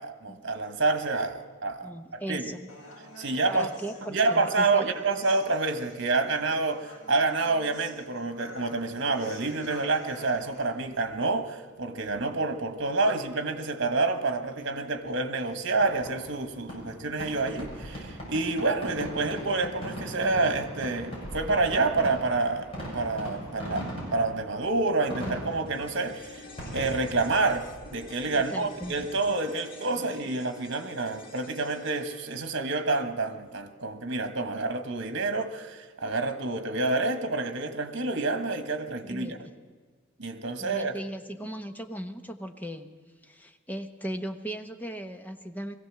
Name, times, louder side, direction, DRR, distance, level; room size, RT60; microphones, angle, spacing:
voice 1, 0.0-1.9 2.3-2.5 3.2-3.7 4.1-26.4 26.7-39.4 40.2-40.9, right 3 dB, 60° right, 1.5 m, -28 dB
voice 2, 1.8-2.7 3.5-4.9 28.3-29.0 29.9-30.1 39.0-39.3 40.6-42.9 43.2-45.8, right 1 dB, 10° left, 1.0 m, -37 dB
Human voice, 2.7-10.7, left 1 dB, 75° left, 4.4 m, -49 dB
Fireworks, 15.8-29.3, equal, 30° left, 6.7 m, -40 dB
sound 1, 25.7-34.1 34.4-34.5, left 3 dB, 45° left, 1.8 m, -49 dB
22.0 x 15.5 x 7.6 m
head